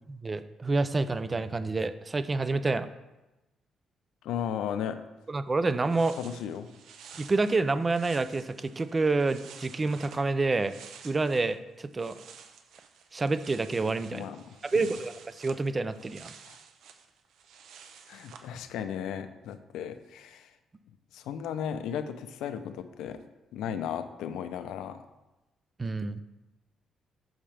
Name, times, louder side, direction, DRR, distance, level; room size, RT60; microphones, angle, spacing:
voice 1, 0.1-2.9 5.3-6.2 7.2-10.8 11.0-12.2 13.1-14.3 14.6-16.3 25.8-26.2, right 3 dB, 25° right, 12 dB, 0.5 m, -28 dB
voice 2, 4.2-5.0 6.2-6.7 14.1-14.9 16.5-16.6 18.1-20.5 21.1-23.2 23.5-25.1, left 8 dB, 85° left, 10 dB, 0.6 m, -35 dB
sound 1, 5.4-5.5 5.7-11.6 11.8-18.5, right 7 dB, 80° right, 0.8 m, -51 dB
8.9 x 6.5 x 3.4 m, 1.0 s
cardioid pair, 90°, 0 cm